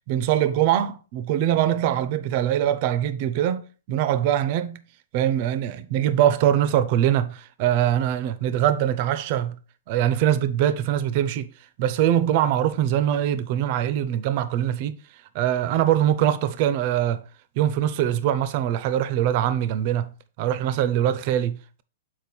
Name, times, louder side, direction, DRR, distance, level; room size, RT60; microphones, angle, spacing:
voice 1, 0.1-4.8 5.1-9.6 9.9-11.5 11.8-14.9 15.3-17.2 17.6-20.1 20.4-21.8, right 11 dB, 45° right, 0.7 m, -23 dB
6.9 x 4.5 x 4.4 m
hypercardioid pair, 125°, 0 cm